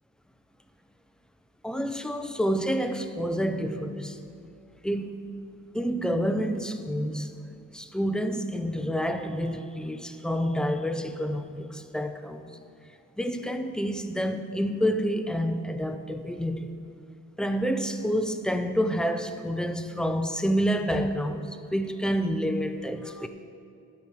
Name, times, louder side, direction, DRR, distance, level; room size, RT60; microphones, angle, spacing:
voice 1, 1.6-4.2 4.8-5.2 5.7-7.3 7.7-12.6 13.2-16.8 17.4-23.3, equal, 5° left, 0.4 m, -28 dB
12.5 x 5.1 x 7.4 m
wide cardioid pair, 165°, 30 cm